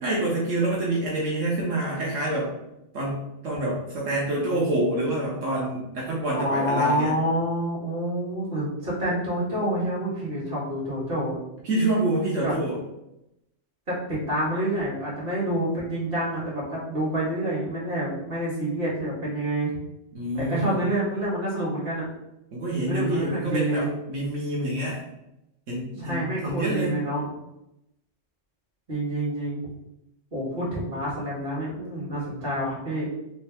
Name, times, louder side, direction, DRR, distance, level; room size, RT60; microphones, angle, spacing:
voice 1, 0.0-2.5 2.9-7.1 11.6-12.8 20.1-20.8 22.5-25.0 25.7-27.0, right 1 dB, 80° right, -5 dB, 1.3 m, -27 dB
voice 2, 6.3-11.4 12.4-12.5 13.9-19.7 20.3-22.1 22.8-23.9 26.0-27.3 28.9-29.7 30.3-33.1, right 1 dB, 50° right, -6 dB, 2.0 m, -27 dB
4.1 x 3.2 x 3.5 m, 0.87 s
omnidirectional pair, 1.3 m